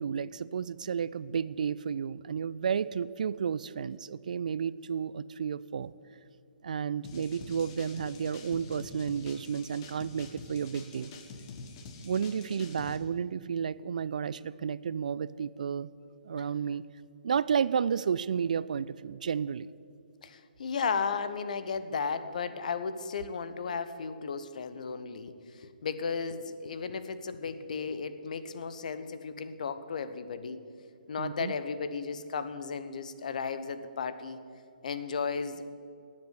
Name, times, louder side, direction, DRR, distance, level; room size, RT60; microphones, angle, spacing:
voice 1, 0.0-5.9 6.6-11.1 12.0-15.9 16.2-16.9 17.2-19.7 31.2-31.5, right 7 dB, 55° right, 18 dB, 0.4 m, -32 dB
sound 1, 7.0-13.0, left 4 dB, 30° left, 1.6 m, -47 dB
voice 2, 20.2-30.6 31.1-34.4 34.8-35.6, left 5 dB, 50° left, 12 dB, 1.1 m, -35 dB
18.0 x 7.6 x 9.6 m, 2.4 s
figure-of-eight pair, 130°, 5 cm